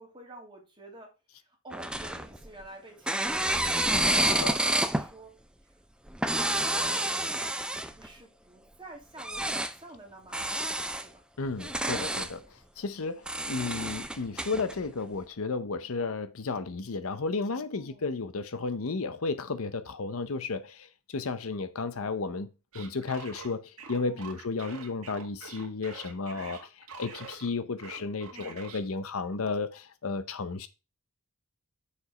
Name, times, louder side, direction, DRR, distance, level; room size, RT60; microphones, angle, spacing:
voice 1, 0.0-5.4 6.3-11.2 17.7-18.1 24.0-24.4 28.3-28.7, right 2 dB, 20° right, 2.6 m, -50 dB
sound 1, 1.7-2.6 3.1-5.1 6.1-8.1 9.2-9.7 10.3-11.1 11.5-12.3 13.3-14.7, right 1 dB, 5° right, 0.5 m, -29 dB
voice 2, 3.9-4.6 11.4-22.5 22.7-30.7, left 4 dB, 65° left, 0.7 m, -33 dB
sound 2, 22.7-27.5 27.8-28.8, right 5 dB, 75° right, 1.9 m, -45 dB
6.7 x 5.2 x 5.0 m
head